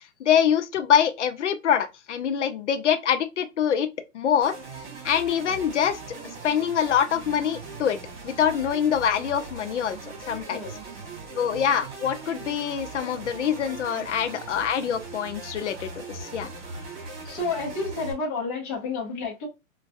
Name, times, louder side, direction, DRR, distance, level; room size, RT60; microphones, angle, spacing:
voice 1, 0.2-3.9 4.1-4.5 5.0-6.0 6.4-8.0 8.2-10.0 10.3-10.6 11.3-16.5, left 8 dB, 60° left, 0.6 m, -24 dB
sound 1, 4.4-18.1, right 3 dB, 45° right, 2.1 m, -40 dB
voice 2, 17.2-19.5, left 3 dB, 10° left, 0.5 m, -30 dB
4.7 x 2.2 x 2.5 m
hypercardioid pair, 160°, 40 cm